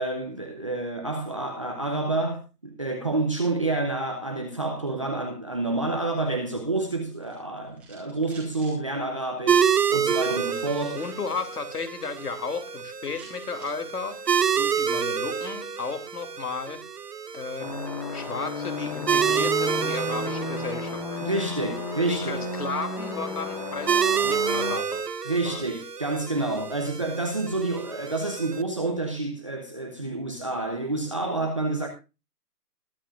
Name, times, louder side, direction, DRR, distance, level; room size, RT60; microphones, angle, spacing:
voice 1, 0.0-11.1 21.2-22.4 25.3-31.9, right 2 dB, 20° right, 0.8 m, -29 dB
sound 1, 7.0-8.8 9.4-9.9 10.6-11.6 12.0-12.4 12.7-12.8 12.9-15.2, right 3 dB, 5° right, 1.6 m, -53 dB
sound 2, 9.5-28.6, right 7 dB, 75° right, 1.3 m, -28 dB
voice 2, 10.9-14.2 14.5-16.8 17.3-17.7 18.1-21.1 22.1-25.1 25.4-25.7, left 4 dB, 65° left, 2.9 m, -34 dB
sound 3, 17.6-24.7, left 4 dB, 25° left, 2.3 m, -33 dB
21.0 x 8.8 x 2.5 m
hypercardioid pair, 165°, 48 cm